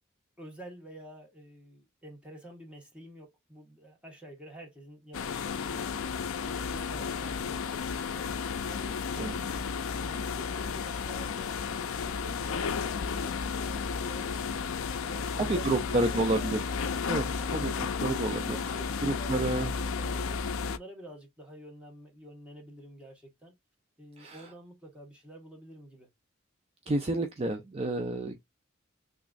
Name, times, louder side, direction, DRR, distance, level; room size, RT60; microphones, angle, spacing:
voice 1, 0.4-6.1 6.4-16.6 17.2-17.5 18.1-23.5 24.0-26.1, equal, 5° right, 1.4 m, -49 dB
sound 1, 5.1-20.8, left 5 dB, 75° left, 0.4 m, -33 dB
voice 2, 9.1-9.5 15.4-16.6 17.1-18.6 19.0-19.7 24.2-24.4 26.9-28.4, right 2 dB, 30° right, 0.4 m, -30 dB
3.6 x 3.0 x 2.4 m
head